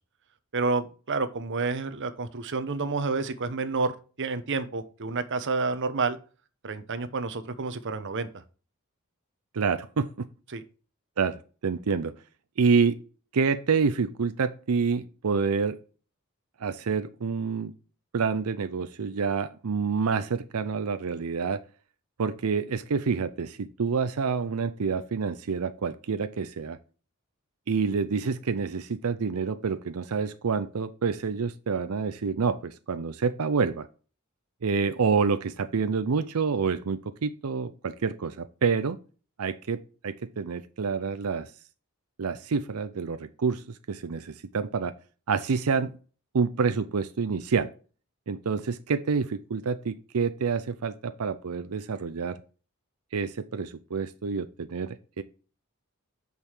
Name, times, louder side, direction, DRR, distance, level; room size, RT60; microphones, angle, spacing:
voice 1, 0.5-3.9 4.2-6.2 6.6-8.3 10.5-10.6, right 3 dB, 55° right, 10 dB, 0.9 m, -29 dB
voice 2, 9.5-10.3 11.2-12.1 12.6-13.0 13.3-15.8 16.6-17.7 18.1-21.6 22.2-26.8 27.7-33.9 34.6-39.0 39.4-41.5 42.2-44.9 45.3-45.9 46.3-47.7 48.3-52.4 53.1-55.2, right 5 dB, 80° right, 11 dB, 0.6 m, -28 dB
6.4 x 5.5 x 4.4 m, 0.37 s
head